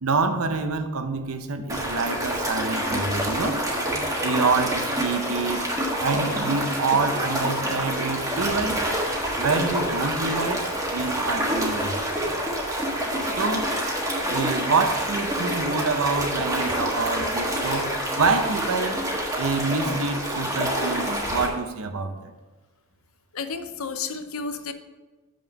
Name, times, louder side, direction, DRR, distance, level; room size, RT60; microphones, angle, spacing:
voice 1, 0.0-3.6 4.2-5.6 6.0-8.8 9.4-12.0 13.4-13.8 14.3-19.1 19.4-22.3, right 4 dB, 80° right, 8 dB, 0.8 m, -26 dB
sound 1, 1.7-21.5, right 1 dB, 15° right, 1.4 m, -27 dB
voice 2, 23.3-24.7, left 5 dB, 75° left, 9 dB, 0.7 m, -31 dB
7.1 x 6.2 x 5.3 m, 1.2 s
head